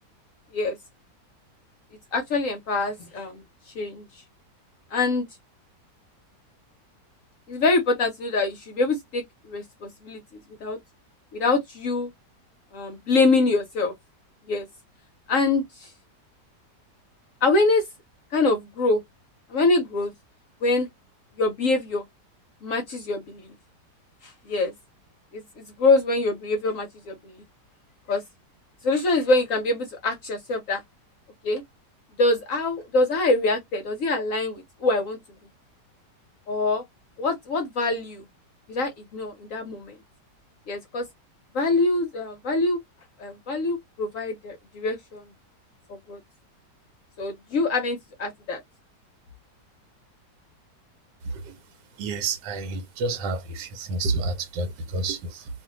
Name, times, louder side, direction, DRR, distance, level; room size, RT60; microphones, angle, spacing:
voice 1, 2.1-4.2 4.9-5.3 7.5-10.8 11.3-12.1 12.7-13.9 14.5-14.7 15.3-15.9 17.4-17.9 18.3-19.0 19.5-20.1 20.6-20.9 21.4-22.0 22.6-23.6 24.2-24.7 25.3-27.4 28.1-28.2 28.8-30.8 31.4-31.6 32.2-35.2 36.5-36.8 37.2-38.2 38.7-40.0 40.7-41.1 41.5-42.8 43.2-45.3 45.9-46.2 47.2-48.6, left 3 dB, 65° left, 0.8 m, -25 dB
voice 2, 52.0-55.5, right 3 dB, 85° right, 1.3 m, -29 dB
2.6 x 2.5 x 2.9 m
omnidirectional pair, 1.9 m